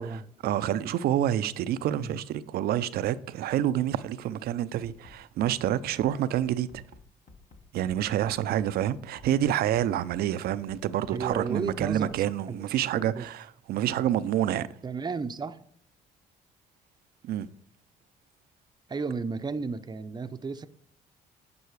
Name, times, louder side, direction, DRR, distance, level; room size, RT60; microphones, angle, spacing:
voice 1, 0.4-6.8 7.7-14.7 17.2-17.5, right 11 dB, 70° right, 0.5 m, -28 dB
Bass drum, 4.8-12.2, left 3 dB, 50° left, 1.6 m, -53 dB
voice 2, 11.1-12.6 12.9-13.3 14.8-15.6 18.9-20.7, right 4 dB, 25° right, 0.7 m, -34 dB
9.5 x 5.6 x 4.8 m
supercardioid pair, 65°, 16 cm